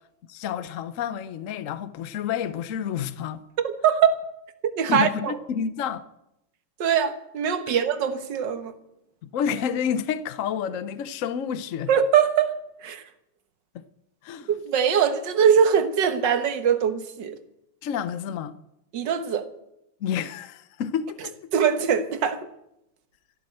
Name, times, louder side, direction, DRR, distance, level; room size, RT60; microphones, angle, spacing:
voice 1, 0.3-3.4 4.9-6.0 7.7-7.8 9.2-11.9 13.7-13.8 14.2-14.5 17.8-18.6 20.0-21.4, left 8 dB, 70° left, 0.7 m, -29 dB
voice 2, 3.6-4.1 4.6-5.4 6.8-8.7 11.9-13.0 14.5-17.4 18.9-19.5 21.5-22.5, right 7 dB, 60° right, 1.8 m, -22 dB
14.0 x 12.5 x 7.8 m
omnidirectional pair, 2.3 m